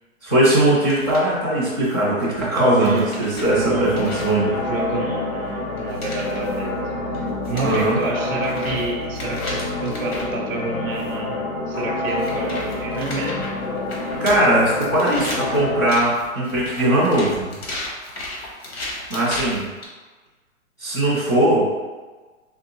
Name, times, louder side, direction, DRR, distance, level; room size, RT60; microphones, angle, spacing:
voice 1, 0.2-4.5 7.6-8.0 14.2-17.5 19.1-19.7 20.8-21.7, right 1 dB, 15° left, -11 dB, 0.4 m, -19 dB
sound 1, 0.9-1.3 1.9-2.2 2.8-4.3 5.8-6.6 7.1-7.2 7.4-10.3 11.0-11.1 12.1-19.8, left 1 dB, 50° left, 0.9 m, -34 dB
voice 2, 2.7-3.2 3.5-4.1 4.3-6.8 7.1-13.5, right 3 dB, 45° right, -3 dB, 0.5 m, -29 dB
sound 2, 3.4-15.9, left 2 dB, 80° left, 1.0 m, -28 dB
3.4 x 2.7 x 3.0 m, 1.3 s
hypercardioid pair, 165°, 41 cm